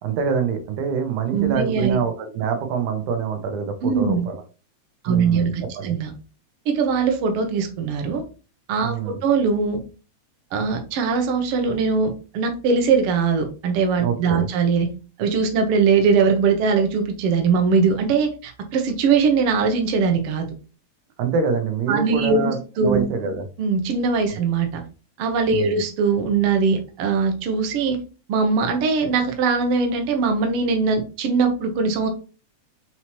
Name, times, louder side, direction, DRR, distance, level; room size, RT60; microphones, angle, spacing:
voice 1, 0.0-4.4 5.1-6.0 8.8-9.2 14.0-14.5 21.2-23.4 24.3-24.4 25.5-25.8, right 5 dB, 90° right, 6 dB, 2.3 m, -25 dB
voice 2, 1.3-2.0 3.8-4.2 5.0-6.1 6.7-8.2 8.7-9.8 10.5-14.9 15.2-20.5 21.9-23.1 23.6-24.8 25.2-28.0 28.3-32.1, right 5 dB, 65° right, 4 dB, 1.4 m, -21 dB
5.5 x 3.0 x 2.9 m, 0.35 s
omnidirectional pair, 3.4 m